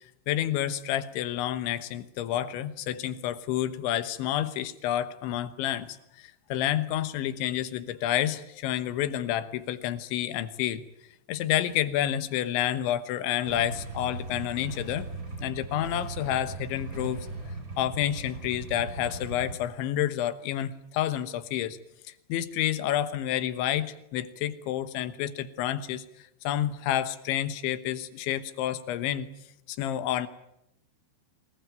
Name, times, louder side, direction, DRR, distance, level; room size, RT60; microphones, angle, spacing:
voice 1, 0.3-10.8 11.3-15.1 15.4-17.3 17.8-21.8 22.3-26.1 26.5-29.3 29.7-30.3, left 11 dB, 80° left, 13 dB, 3.4 m, -29 dB
Motorcycle / Engine starting / Idling, 13.4-19.6, right 2 dB, 20° right, 4.3 m, -38 dB
25.0 x 20.0 x 9.3 m, 0.83 s
omnidirectional pair, 5.4 m